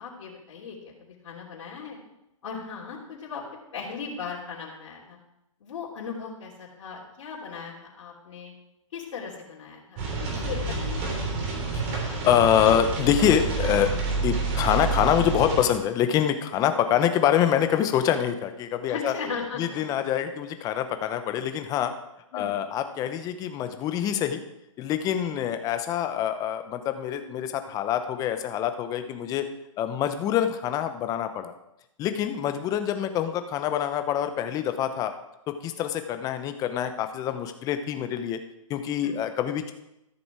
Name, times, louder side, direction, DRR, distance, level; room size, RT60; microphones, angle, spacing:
voice 1, 0.0-2.0 2.4-3.4 3.7-5.2 5.6-8.5 8.9-11.2 16.5-16.7 18.9-19.8 22.3-22.5 25.2-25.3 32.6-32.7 39.0-39.2, left 5 dB, 65° left, -4 dB, 3.1 m, -38 dB
sound 1, 10.0-15.6, right 3 dB, 35° right, 3.5 m, -28 dB
voice 2, 11.7-13.9 14.2-19.1 19.6-21.9 22.3-24.4 24.8-29.4 29.8-31.5 32.0-35.1 35.5-38.4 38.7-39.7, left 10 dB, 20° left, 9 dB, 0.9 m, -25 dB
13.5 x 7.0 x 4.8 m, 0.87 s
hypercardioid pair, 145°, 17 cm